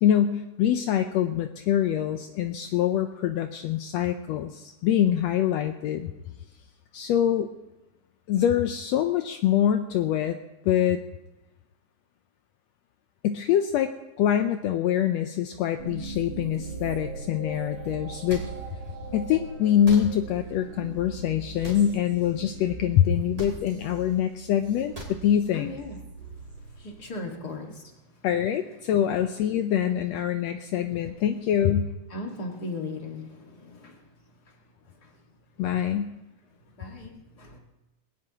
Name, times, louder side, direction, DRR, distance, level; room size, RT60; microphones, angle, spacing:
voice 1, 0.0-6.1 6.9-7.5 8.3-10.4 10.6-11.0 13.2-13.9 14.2-18.4 19.1-25.7 28.2-31.9 35.6-36.1, left 10 dB, 85° left, 7 dB, 1.5 m, -24 dB
sound 1, 15.8-27.4, right 4 dB, 80° right, 3.7 m, -40 dB
sound 2, 18.3-18.5 19.8-20.0 21.6-21.8 23.4-23.5 24.9-25.2, right 1 dB, 20° right, 3.1 m, -36 dB
voice 2, 25.5-28.3 28.7-28.8 30.9-31.2 32.1-35.4 35.8-36.0 36.5-37.6, left 2 dB, 35° left, 1 dB, 1.9 m, -40 dB
21.0 x 17.0 x 2.9 m, 1.0 s
omnidirectional pair, 3.7 m